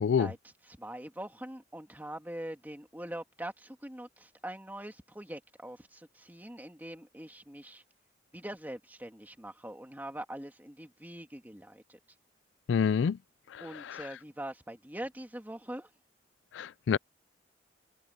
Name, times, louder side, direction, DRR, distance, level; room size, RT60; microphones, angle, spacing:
voice 1, 0.2-7.8 8.3-12.0 13.6-15.9, right 1 dB, 10° right, 2.1 m, -43 dB
voice 2, 12.7-13.2 16.6-17.0, left 6 dB, 90° left, 0.4 m, -26 dB
head